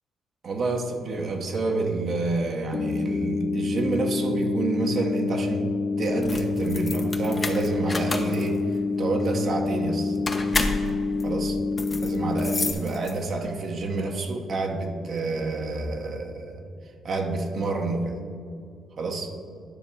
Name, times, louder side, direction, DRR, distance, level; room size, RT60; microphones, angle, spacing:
voice 1, 0.4-8.6 9.0-10.2 11.2-11.6 12.0-16.6 17.0-18.2 19.0-19.3, right 3 dB, 55° right, 3 dB, 0.9 m, -28 dB
sound 1, 2.7-12.7, left 4 dB, 60° left, 0.5 m, -27 dB
sound 2, 6.1-13.5, left 2 dB, 25° left, 0.8 m, -31 dB
10.0 x 3.4 x 7.0 m, 2.3 s
cardioid pair, 90°, 0 cm